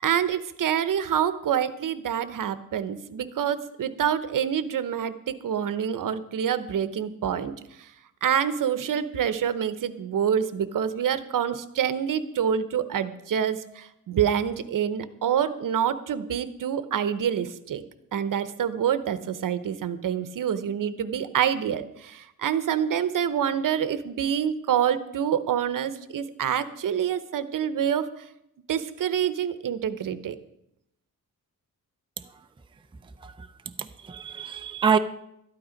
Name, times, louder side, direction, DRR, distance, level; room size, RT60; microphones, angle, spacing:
voice 1, 0.0-7.5 8.2-17.8 18.1-28.1 28.7-30.4, right 9 dB, 70° right, 0.9 m, -26 dB
voice 2, 33.8-35.0, right 6 dB, 15° right, 0.5 m, -26 dB
12.5 x 11.5 x 5.2 m
wide cardioid pair, 140°, 34 cm